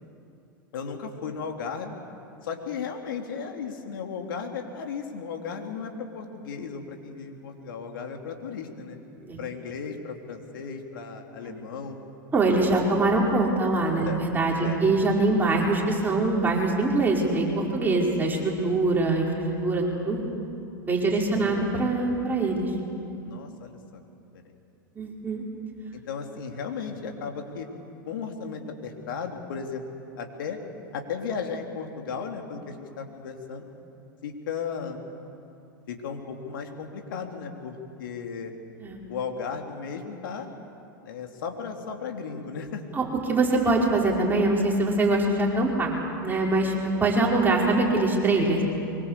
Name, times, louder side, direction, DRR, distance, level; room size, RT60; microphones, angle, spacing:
voice 1, 0.7-1.9 2.4-9.0 9.4-12.0 12.8-12.9 14.0-14.2 14.6-14.8 21.3-21.6 23.2-23.8 25.9-27.7 28.0-29.8 30.1-30.6 30.9-33.7 34.2-35.0 35.9-38.5 39.1-40.5 41.0-42.8, left 6 dB, 75° left, 3 dB, 3.3 m, -35 dB
voice 2, 12.3-20.2 20.9-22.7 24.9-25.4 38.8-39.0 42.9-48.6, right 2 dB, 15° right, -2 dB, 5.1 m, -23 dB
24.0 x 23.0 x 8.4 m, 2.7 s
hypercardioid pair, 95°, 11 cm